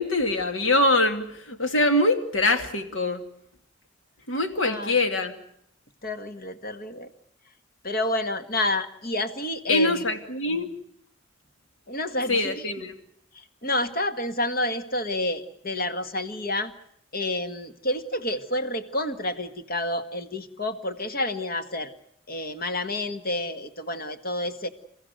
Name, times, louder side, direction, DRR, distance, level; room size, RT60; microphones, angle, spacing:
voice 1, 0.0-3.2 4.3-5.4 9.7-10.7 12.3-12.9, left 2 dB, 80° left, 6 dB, 2.6 m, -23 dB
voice 2, 4.6-5.0 6.0-7.1 7.8-10.0 11.9-12.6 13.3-16.7 17.1-21.9 22.3-24.7, left 1 dB, 50° left, 8 dB, 1.8 m, -29 dB
29.5 x 15.0 x 9.3 m, 0.72 s
head